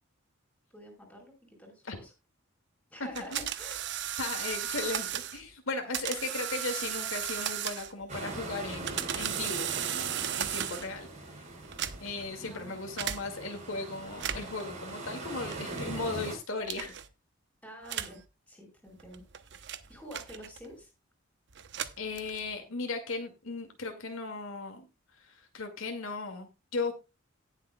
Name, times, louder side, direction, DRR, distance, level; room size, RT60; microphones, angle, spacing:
voice 1, 0.7-2.1 2.9-3.8 12.4-12.8 17.6-19.2 19.6-20.9, equal, 5° left, 2 dB, 4.7 m, -48 dB
voice 2, 3.0-3.5 4.2-11.1 11.4-11.5 12.0-17.0 22.0-24.9 25.1-26.9, left 3 dB, 75° left, 4 dB, 2.3 m, -37 dB
sound 1, 3.1-5.4 5.9-8.1 8.6-11.0 11.6-12.2 13.0-13.2 14.1-14.6 15.5-15.8 16.6-17.1 17.8-18.2 19.0-20.7 21.5-22.6, right 10 dB, 55° right, 0.9 m, -35 dB
sound 2, 8.1-16.4, right 2 dB, 35° right, 4.0 m, -41 dB
18.5 x 7.4 x 2.3 m, 0.27 s
head